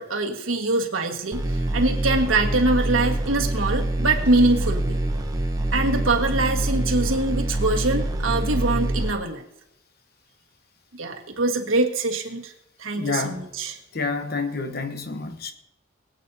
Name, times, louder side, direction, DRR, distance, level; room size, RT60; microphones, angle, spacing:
voice 1, 0.0-5.0 5.7-9.4 11.0-12.5 12.8-13.8, right 2 dB, 85° right, 3 dB, 1.5 m, -23 dB
sound 1, 1.3-9.1, right 1 dB, 20° right, 0.8 m, -25 dB
voice 2, 12.9-13.5 13.9-15.5, left 4 dB, 50° left, 8 dB, 0.9 m, -28 dB
22.0 x 8.6 x 2.7 m, 0.83 s
head